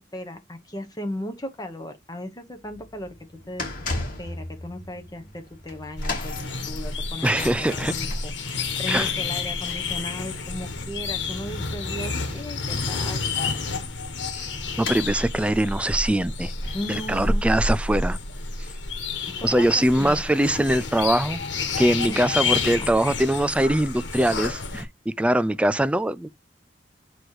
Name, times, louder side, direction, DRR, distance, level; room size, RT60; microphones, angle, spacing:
voice 1, 0.0-3.1 3.5-3.6 4.2-13.6 16.7-17.5 19.3-20.2 22.1-22.3 22.5-22.9, left 1 dB, 20° left, 1.1 m, -36 dB
sound 1, 2.5-18.9 19.1-19.4 20.2-20.3, left 3 dB, 50° left, 2.4 m, -39 dB
sound 2, 6.0-24.8, left 4 dB, 90° left, 1.4 m, -29 dB
voice 2, 7.2-7.9 8.9-9.1 14.3-16.5 16.9-18.2 18.6-18.7 19.4-21.4 21.8-26.3, right 1 dB, 5° right, 0.3 m, -22 dB
8.0 x 3.1 x 4.8 m
head